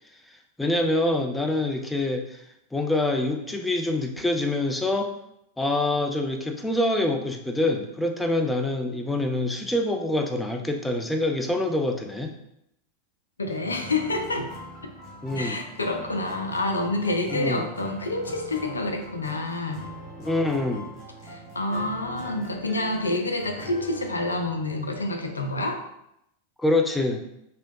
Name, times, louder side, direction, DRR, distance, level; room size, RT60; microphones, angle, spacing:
voice 1, 0.3-2.4 2.7-5.1 5.6-12.3 15.2-15.6 17.3-17.6 20.2-20.9 26.6-27.3, left 2 dB, 5° left, 4 dB, 0.4 m, -25 dB
voice 2, 13.4-14.5 15.4-19.8 21.2-25.8, left 2 dB, 75° left, 4 dB, 0.4 m, -28 dB
sound 1, 13.4-25.7, equal, 25° left, 1.2 m, -42 dB
3.0 x 2.6 x 3.0 m, 0.79 s
figure-of-eight pair, 90°, 0 cm